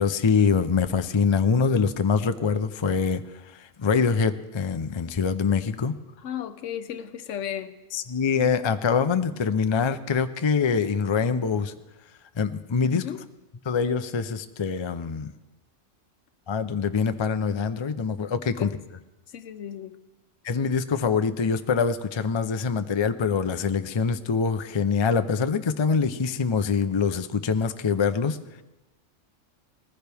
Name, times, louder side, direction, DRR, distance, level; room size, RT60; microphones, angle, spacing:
voice 1, 0.0-3.2 3.5-5.9 7.9-11.7 12.4-13.0 13.7-15.3 16.5-18.7 20.4-28.4, left 5 dB, 40° left, 10 dB, 0.4 m, -24 dB
voice 2, 6.2-7.7 12.9-13.2 18.6-18.7 19.3-20.0, left 9 dB, 75° left, 11 dB, 1.1 m, -34 dB
20.0 x 15.0 x 3.5 m, 1.0 s
omnidirectional pair, 1.3 m